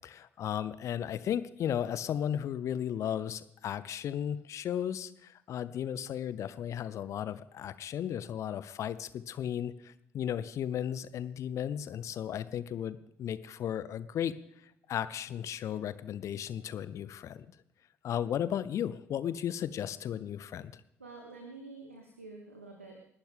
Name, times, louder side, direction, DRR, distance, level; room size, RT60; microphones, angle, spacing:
voice 1, 0.0-14.3 14.9-17.5 18.0-20.8, left 9 dB, 50° left, 16 dB, 0.7 m, -35 dB
voice 2, 21.0-23.0, right 3 dB, 85° right, 2 dB, 1.4 m, -48 dB
28.5 x 11.5 x 3.6 m, 0.80 s
figure-of-eight pair, 50°, 7 cm